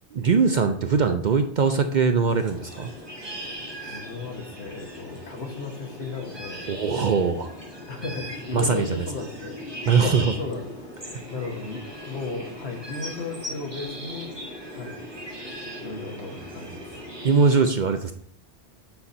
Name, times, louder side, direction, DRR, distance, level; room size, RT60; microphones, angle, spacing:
voice 1, 0.1-2.9 6.7-7.5 8.5-9.1 9.9-10.3 17.2-18.1, right 5 dB, 55° right, 7 dB, 0.6 m, -21 dB
sound 1, 2.3-17.6, equal, 20° right, 1.6 m, -38 dB
voice 2, 3.9-6.6 7.9-9.6 9.9-14.3 14.7-15.0 15.8-16.9, left 3 dB, 70° left, 3 dB, 1.5 m, -35 dB
7.8 x 4.1 x 4.2 m, 0.65 s
omnidirectional pair, 1.2 m